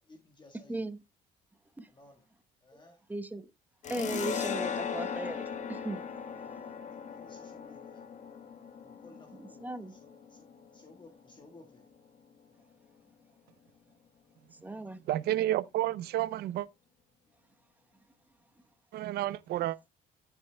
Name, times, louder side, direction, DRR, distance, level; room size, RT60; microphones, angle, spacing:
voice 1, 0.1-0.9 1.9-2.2 2.6-3.0 7.0-8.0 8.8-10.4 10.7-11.8, left 2 dB, 25° left, 1.6 m, -57 dB
voice 2, 0.7-1.0 1.8-1.9 3.1-3.5 3.9-6.0 9.3-9.9 14.6-15.0, right 2 dB, 10° right, 1.0 m, -37 dB
sound 1, 3.8-11.0, left 7 dB, 45° left, 1.4 m, -38 dB
voice 3, 15.1-16.7 18.9-19.8, right 14 dB, 70° right, 0.6 m, -30 dB
15.0 x 6.3 x 2.2 m
cardioid pair, 110°, 17 cm